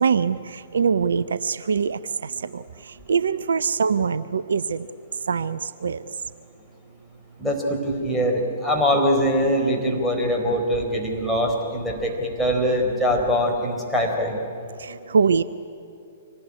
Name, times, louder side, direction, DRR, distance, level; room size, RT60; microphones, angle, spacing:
voice 1, 0.0-2.6 3.1-4.9 5.3-6.0 14.8-15.4, right 6 dB, 65° right, 15 dB, 0.6 m, -23 dB
voice 2, 7.4-14.4, equal, ahead, -2 dB, 4.1 m, -23 dB
25.0 x 19.0 x 9.7 m, 2.6 s
figure-of-eight pair, 115°, 0 cm